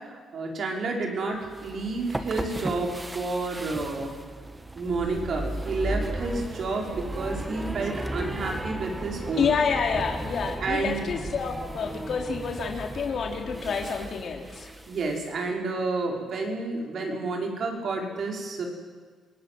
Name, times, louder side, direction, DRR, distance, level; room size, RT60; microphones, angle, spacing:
voice 1, 0.1-4.1 4.8-9.5 10.6-11.1 14.9-18.6, right 3 dB, 55° right, 1 dB, 5.6 m, -30 dB
sound 1, 1.4-15.3, right 1 dB, 15° right, 1.9 m, -35 dB
voice 2, 9.4-14.7, left 5 dB, 55° left, 3 dB, 3.7 m, -28 dB
27.0 x 19.0 x 7.9 m, 1.5 s
cardioid pair, 90°, 0 cm